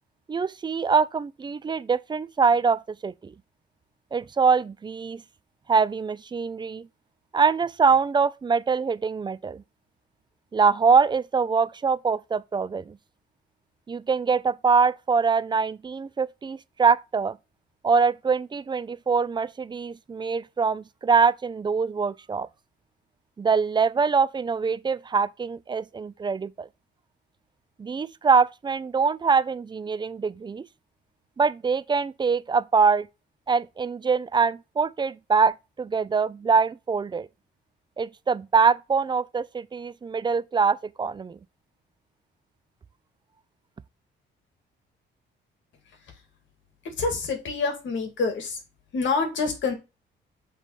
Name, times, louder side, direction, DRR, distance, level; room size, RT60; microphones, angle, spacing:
voice 1, 0.3-3.3 4.1-5.2 5.7-6.9 7.3-9.6 10.5-13.0 13.9-17.4 17.8-22.5 23.4-26.7 27.8-30.7 31.4-33.1 33.5-37.3 38.0-41.4, right 5 dB, 25° right, 0.4 m, -24 dB
voice 2, 46.8-48.6 48.9-49.7, left 4 dB, 70° left, 2.0 m, -27 dB
7.4 x 3.3 x 5.4 m
cardioid pair, 90°, 20 cm